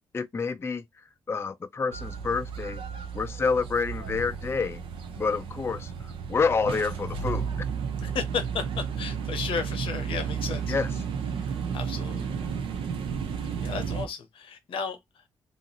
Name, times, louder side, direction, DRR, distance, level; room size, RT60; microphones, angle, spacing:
voice 1, 0.1-2.8 3.1-4.8 5.2-7.5 10.7-10.9, left 4 dB, 25° left, 0.3 m, -28 dB
sound 1, 1.9-14.1, right 6 dB, 75° right, 0.6 m, -33 dB
voice 2, 8.0-10.7 11.3-12.3 13.3-15.2, left 6 dB, 75° left, 0.7 m, -34 dB
2.7 x 2.4 x 2.8 m
supercardioid pair, 50°, 9 cm